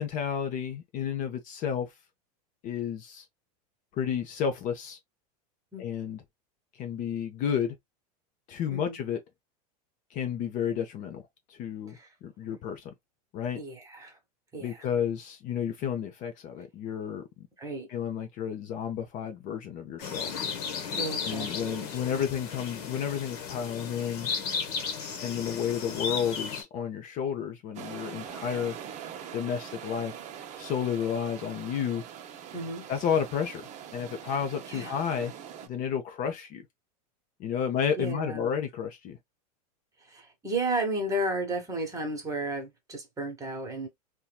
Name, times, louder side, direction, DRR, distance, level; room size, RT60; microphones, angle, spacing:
voice 1, 0.0-1.9 2.6-3.2 3.9-5.0 5.8-6.2 6.8-7.8 8.5-9.2 10.1-12.9 13.3-13.6 14.6-17.5 17.9-20.3 21.2-24.3 25.2-28.8 29.3-30.2 30.6-32.0 32.9-33.6 33.9-35.3 35.6-36.6 37.4-39.2, left 8 dB, 40° left, 0.6 m, -31 dB
voice 2, 13.5-14.2 14.5-14.9 17.6-17.9 20.9-21.9 32.5-32.9 34.7-34.9 38.0-38.5 40.0-43.9, right 2 dB, 15° right, 1.1 m, -33 dB
sound 1, 20.0-26.6, left 6 dB, 70° left, 1.0 m, -35 dB
sound 2, 27.7-35.7, right 9 dB, 35° right, 0.6 m, -43 dB
2.9 x 2.3 x 2.2 m
supercardioid pair, 120°, 20 cm